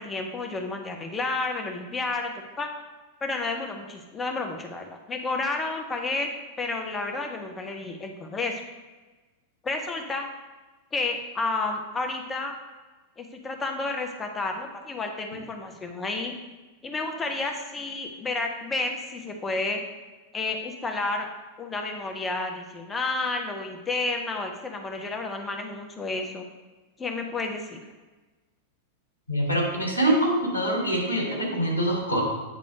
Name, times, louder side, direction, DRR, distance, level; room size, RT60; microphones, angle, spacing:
voice 1, 0.0-2.7 3.2-6.3 6.6-8.6 9.6-10.2 10.9-12.5 13.2-16.3 16.8-19.8 20.3-21.3 21.6-26.5 27.0-27.8, left 3 dB, 20° left, 3 dB, 1.0 m, -31 dB
voice 2, 29.3-32.2, right 1 dB, 90° right, -1 dB, 2.4 m, -24 dB
9.2 x 3.6 x 5.2 m, 1.2 s
figure-of-eight pair, 90°, 0 cm